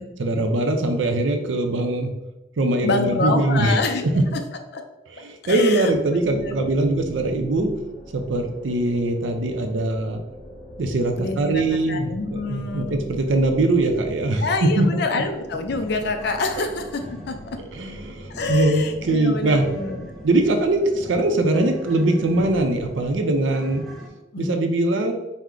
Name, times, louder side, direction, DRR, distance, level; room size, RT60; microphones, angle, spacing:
voice 1, 0.2-2.1 2.6-3.8 4.1-4.2 5.2-7.7 8.1-10.2 10.8-14.9 15.1-15.2 17.7-19.6 20.2-23.8 24.4-25.1, right 2 dB, 85° right, 5 dB, 0.5 m, -22 dB
voice 2, 2.8-4.4 4.7-4.8 5.4-5.9 6.3-6.6 11.2-13.0 14.4-17.4 18.3-20.3 24.3-24.6, left 3 dB, 60° left, 6 dB, 0.5 m, -27 dB
sound 1, 6.1-23.6, equal, 30° left, 1.2 m, -43 dB
sound 2, 15.0-24.1, left 1 dB, ahead, 0.5 m, -43 dB
4.5 x 2.1 x 3.7 m, 1.0 s
head